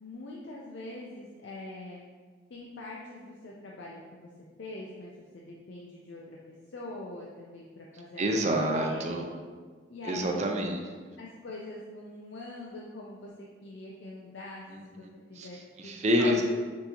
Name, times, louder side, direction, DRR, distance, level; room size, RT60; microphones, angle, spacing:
voice 1, 0.0-2.0 2.5-4.3 4.6-6.4 6.7-8.4 8.8-9.0 9.9-10.5 11.2-13.3 13.6-14.6 14.9-15.0 15.3-15.6 15.8-16.4, left 2 dB, 75° left, -3 dB, 0.5 m, -43 dB
voice 2, 8.2-9.2 10.0-11.0 15.4-15.5 15.8-16.4, equal, 40° right, 2 dB, 0.5 m, -27 dB
6.3 x 2.7 x 2.8 m, 1.5 s
head